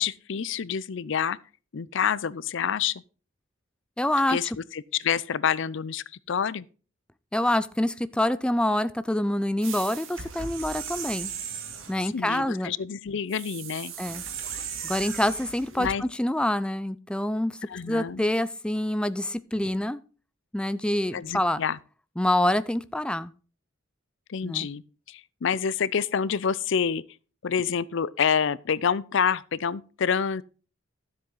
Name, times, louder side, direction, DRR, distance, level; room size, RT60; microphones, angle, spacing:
voice 1, 0.0-1.4 1.7-3.0 4.3-6.7 12.0-13.9 15.8-16.0 17.6-18.2 21.1-21.8 24.3-27.0 27.4-30.4, left 7 dB, 65° left, 0.5 m, -28 dB
voice 2, 4.0-4.4 7.3-11.3 11.9-12.7 14.0-14.2 14.8-17.6 17.9-20.0 20.5-21.6 22.2-23.3 24.4-24.7, left 1 dB, 5° left, 0.4 m, -26 dB
sound 1, 9.6-12.0 13.3-16.0, right 7 dB, 80° right, 1.9 m, -37 dB
13.0 x 7.7 x 3.9 m
head